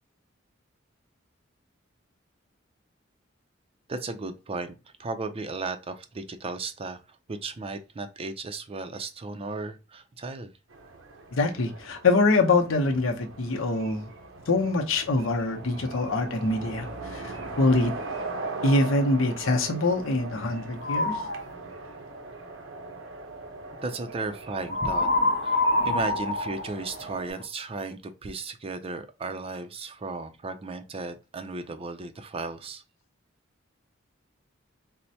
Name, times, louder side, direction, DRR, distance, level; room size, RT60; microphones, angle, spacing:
voice 1, 3.9-7.0 7.3-10.5 23.8-25.1 25.4-32.8, right 3 dB, 30° right, 0.4 m, -35 dB
sound 1, 10.7-27.3, right 3 dB, 85° right, 0.7 m, -40 dB
voice 2, 11.3-14.1 14.5-17.9 18.6-21.2, left 2 dB, 85° left, 0.7 m, -24 dB
sound 2, 20.8-21.4 24.7-27.4, left 2 dB, 50° left, 0.6 m, -26 dB
4.3 x 2.1 x 2.7 m
head